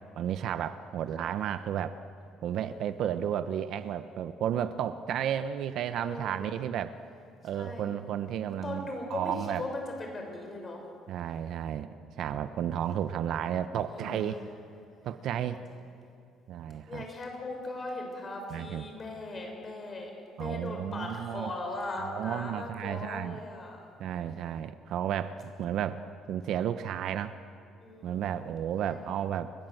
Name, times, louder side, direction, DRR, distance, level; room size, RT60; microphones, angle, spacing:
voice 1, 0.2-2.0 2.4-7.0 7.4-9.6 11.1-14.4 15.0-15.6 16.5-17.0 18.5-18.8 20.4-21.5 22.0-23.4 24.0-27.4 28.0-29.7, right 9 dB, 55° right, 11 dB, 0.8 m, -33 dB
voice 2, 6.0-6.6 7.5-7.9 8.4-10.9 13.9-14.4 15.0-15.5 16.9-23.8 27.8-28.4 28.8-29.0, left 2 dB, 25° left, 2 dB, 6.3 m, -39 dB
29.5 x 24.0 x 7.9 m, 2.5 s
cardioid pair, 160°, 0 cm